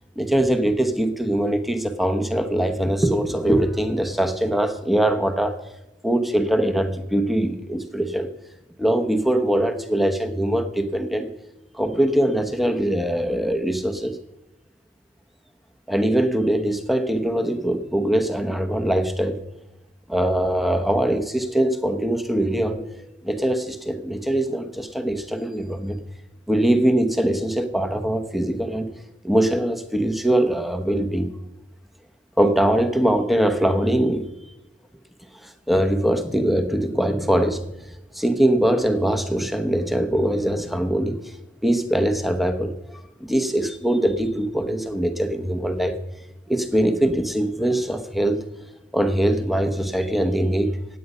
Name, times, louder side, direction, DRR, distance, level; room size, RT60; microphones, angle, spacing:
voice 1, 0.2-5.6 6.0-8.3 8.8-11.3 11.7-14.2 15.9-19.4 20.1-26.0 26.5-28.9 29.2-31.3 32.4-34.3 35.3-37.6 38.1-41.4 41.6-42.7 43.2-46.0 46.5-48.4 48.9-50.7, right 1 dB, ahead, 7 dB, 0.9 m, -22 dB
16.5 x 9.3 x 5.5 m, 0.92 s
head